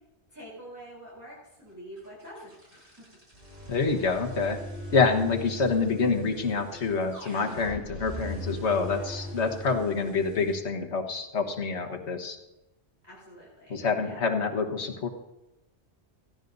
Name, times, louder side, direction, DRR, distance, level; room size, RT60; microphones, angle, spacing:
voice 1, 0.3-3.1 8.9-9.3 13.0-14.2, equal, 15° right, -8 dB, 3.6 m, -47 dB
sound 1, 2.0-10.6, left 1 dB, 50° right, 4.5 m, -40 dB
voice 2, 3.7-4.6 4.9-12.4 13.7-15.1, left 4 dB, 75° left, 4 dB, 1.5 m, -27 dB
17.5 x 14.5 x 2.6 m, 0.98 s
omnidirectional pair, 1.2 m